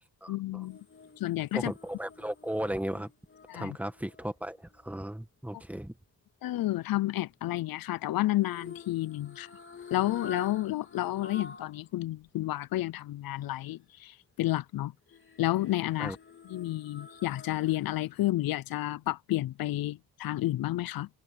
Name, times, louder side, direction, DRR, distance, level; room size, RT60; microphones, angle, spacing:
voice 1, 0.3-0.8 1.2-1.7 3.5-3.8 6.4-9.5 9.9-14.9 15.4-16.2 16.4-21.1, left 16 dB, 60° left, 0.6 m, -31 dB
sound 1, 0.6-4.8 8.4-11.8 12.2-12.3 15.1-18.0 18.3-18.5, left 5 dB, 30° left, 4.3 m, -48 dB
voice 2, 1.5-3.1 3.5-5.9 16.0-16.2, right 1 dB, 5° right, 1.9 m, -35 dB
open air
cardioid pair, 115°, 39 cm